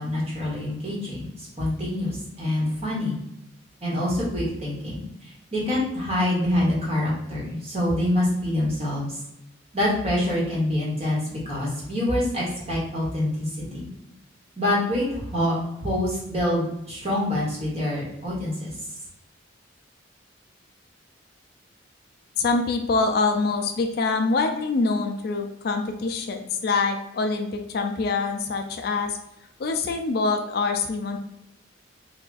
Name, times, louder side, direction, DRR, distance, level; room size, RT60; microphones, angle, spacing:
voice 1, 0.0-3.1 3.8-9.2 9.7-13.9 14.6-18.7, left 1 dB, 30° right, -6 dB, 1.3 m, -26 dB
voice 2, 22.4-29.2 29.6-31.2, left 3 dB, 50° left, 4 dB, 0.3 m, -25 dB
3.4 x 2.4 x 3.8 m, 0.85 s
head